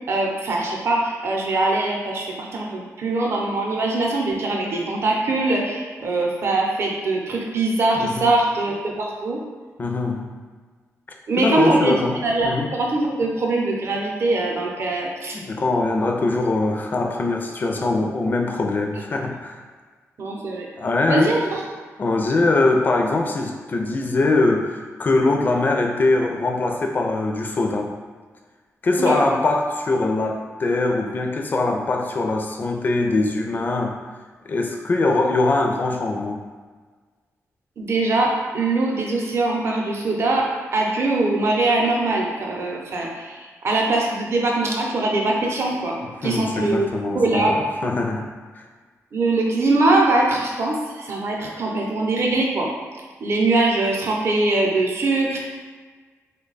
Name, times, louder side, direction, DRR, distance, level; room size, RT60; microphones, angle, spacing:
voice 1, 0.1-9.4 11.3-12.0 12.2-15.4 20.2-20.7 21.1-21.6 29.0-29.3 37.8-46.0 46.2-46.9 47.1-47.6 49.1-52.7 53.2-55.4, right 2 dB, 50° right, -1 dB, 0.6 m, -22 dB
voice 2, 9.8-10.3 11.4-12.2 12.4-12.7 15.3-19.6 20.8-21.4 22.0-27.9 28.8-34.0 34.5-36.4 46.0-48.3 48.5-48.6, left 2 dB, 35° left, 3 dB, 0.4 m, -22 dB
3.2 x 2.2 x 3.9 m, 1.5 s
wide cardioid pair, 145°, 5 cm